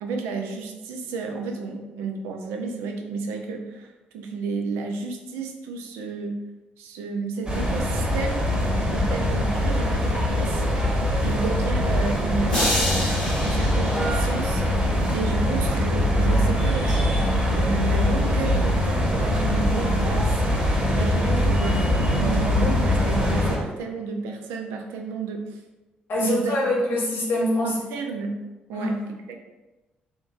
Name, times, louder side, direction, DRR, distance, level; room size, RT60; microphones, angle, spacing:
voice 1, 0.0-6.4 6.8-8.4 8.9-10.9 11.2-20.4 20.9-25.6 26.2-26.6 27.6-28.4 28.7-29.4, right 4 dB, 65° right, 3 dB, 0.4 m, -32 dB
sound 1, 7.5-23.6, left 1 dB, 20° right, 1.2 m, -22 dB
sound 2, 12.5-14.8, left 1 dB, 85° left, 1.1 m, -28 dB
voice 2, 26.1-27.8 28.7-28.8, left 1 dB, 50° left, -3 dB, 1.1 m, -24 dB
3.6 x 2.6 x 2.7 m, 1.1 s
figure-of-eight pair, 40°, 5 cm